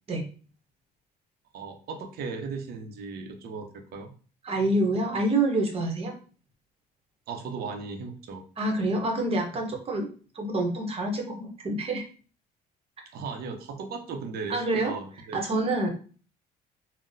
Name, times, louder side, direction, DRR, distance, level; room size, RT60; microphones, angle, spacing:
voice 1, 1.5-4.1 7.3-8.4 13.1-15.4, right 4 dB, 65° right, 4 dB, 0.7 m, -37 dB
voice 2, 4.4-6.1 8.6-10.1 10.3-12.0 14.5-14.9 15.3-15.9, right 2 dB, 35° right, 2 dB, 0.9 m, -27 dB
3.9 x 2.1 x 2.6 m, 0.39 s
cardioid pair, 110°, 17 cm